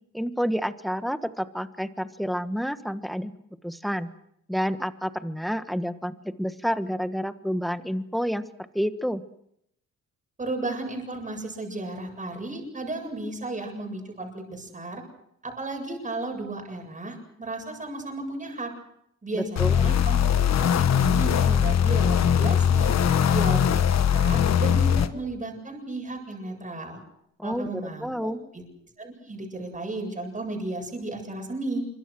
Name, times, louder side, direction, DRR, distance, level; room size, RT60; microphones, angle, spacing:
voice 1, 0.1-3.3 3.6-4.1 4.5-9.2 19.3-19.8 27.4-28.4, equal, ahead, 11 dB, 1.5 m, -29 dB
voice 2, 10.4-15.0 15.4-18.7 19.2-20.2 20.6-22.9 23.3-27.0 27.4-28.7 29.0-31.9, right 2 dB, 25° right, 2 dB, 7.8 m, -34 dB
sound 1, 19.6-25.1, left 8 dB, 60° left, 1.5 m, -21 dB
26.0 x 24.0 x 6.3 m, 0.74 s
cardioid pair, 90°, 30 cm